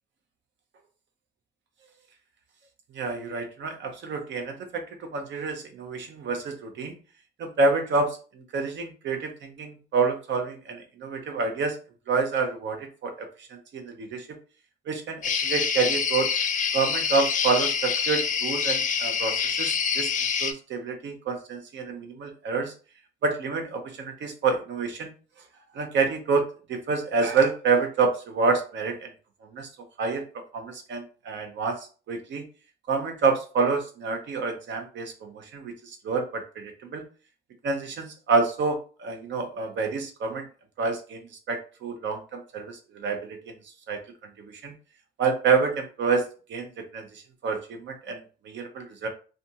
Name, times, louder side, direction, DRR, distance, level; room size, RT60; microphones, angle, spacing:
voice 1, 2.9-6.9 7.4-11.8 12.1-14.3 14.9-16.3 16.7-20.1 20.4-22.7 23.2-25.1 25.7-29.1 29.4-29.7 30.0-30.2 30.5-32.4 32.9-37.0 37.6-40.4 40.8-41.2 41.5-43.5 43.9-44.0 44.4-44.7 45.2-46.7 46.9-48.2 48.4-49.1, right 4 dB, 65° right, 5 dB, 0.7 m, -28 dB
sound 1, 15.2-20.5, left 6 dB, 40° left, 0.4 m, -26 dB
2.6 x 2.3 x 2.7 m, 0.37 s
cardioid pair, 90°, 20 cm